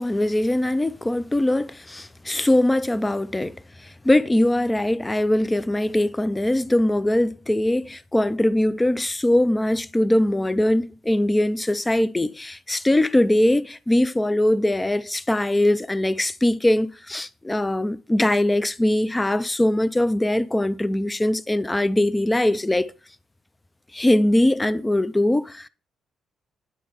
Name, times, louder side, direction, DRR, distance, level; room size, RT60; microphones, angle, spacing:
voice 1, 0.0-3.5 3.8-22.9 23.9-25.7, left 1 dB, 15° left, 0.3 m, -21 dB
9.4 x 3.6 x 3.5 m
cardioid pair, 90°, 0 cm